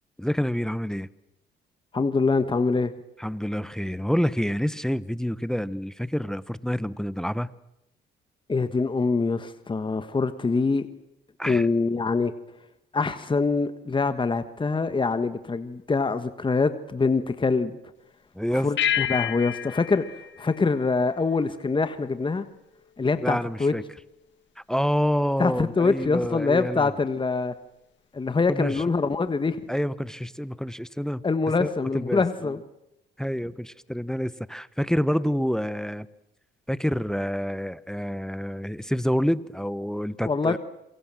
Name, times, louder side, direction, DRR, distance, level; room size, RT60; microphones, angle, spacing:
voice 1, 0.2-1.1 3.2-7.5 11.4-11.7 18.3-18.7 23.2-23.8 24.7-26.9 28.5-28.8 29.7-31.2 31.6-32.5 33.2-36.1 36.7-40.6, equal, 5° left, 18 dB, 0.9 m, -27 dB
voice 2, 1.9-2.9 8.5-10.9 11.5-12.3 12.9-17.8 18.6-20.0 20.4-22.5 23.0-23.7 25.4-27.5 28.1-29.6 31.2-32.6 40.2-40.6, left 4 dB, 25° left, 11 dB, 1.4 m, -24 dB
sound 1, 18.8-21.5, left 10 dB, 65° left, 1.7 m, -30 dB
27.5 x 23.0 x 7.7 m, 0.88 s
cardioid pair, 90°, 20 cm